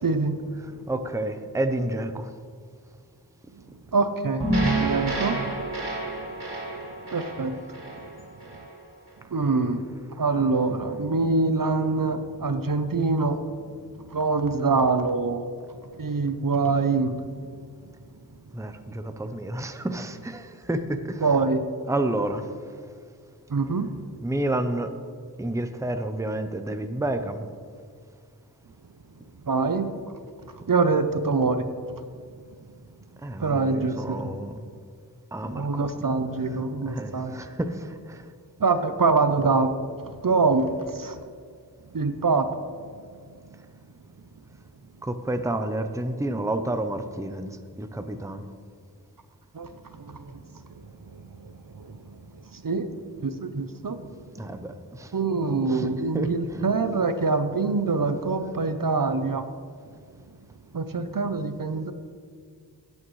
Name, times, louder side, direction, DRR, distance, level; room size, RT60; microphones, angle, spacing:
voice 1, 0.0-0.4 3.9-4.5 4.8-5.6 7.1-7.6 9.3-9.8 10.2-13.4 14.1-15.4 16.0-17.2 21.2-21.6 23.5-23.9 29.5-29.9 30.7-31.7 33.4-34.3 35.5-37.4 38.6-39.7 40.2-41.2 41.9-42.5 49.5-49.7 50.0-50.4 51.4-51.5 51.8-52.0 52.5-52.9 53.2-54.0 55.1-59.4 60.7-61.9, right 4 dB, 55° right, 9 dB, 0.7 m, -24 dB
voice 2, 0.9-2.3 18.5-21.2 21.9-22.4 24.2-24.9 25.4-27.5 33.2-34.5 35.3-35.7 36.9-38.2 45.0-47.5 47.8-48.4 54.4-55.1 55.7-55.9 56.1-56.7, right 1 dB, 5° right, 8 dB, 0.6 m, -30 dB
sound 1, 4.4-8.7, right 2 dB, 70° right, 2.6 m, -28 dB
17.0 x 8.5 x 3.2 m, 2.1 s
wide cardioid pair, 45°, 41 cm